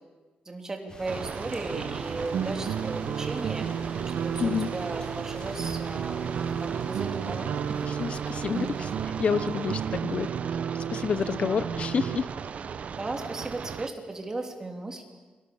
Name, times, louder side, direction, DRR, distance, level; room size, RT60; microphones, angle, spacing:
voice 1, 0.4-3.7 4.2-6.2 6.6-7.9 11.2-11.6 12.8-15.0, right 2 dB, 20° right, 3 dB, 3.2 m, -36 dB
sound 1, 0.9-10.3, left 1 dB, 30° left, 4.2 m, -46 dB
sound 2, 1.1-13.9, right 6 dB, 50° right, 0.9 m, -37 dB
sound 3, 1.7-12.2, right 7 dB, 85° right, 1.2 m, -33 dB
voice 2, 4.4-4.7 7.8-10.3 10.7-12.3, left 6 dB, 45° left, 14 dB, 0.8 m, -29 dB
29.5 x 24.5 x 7.1 m, 1.3 s
wide cardioid pair, 160°, 3 cm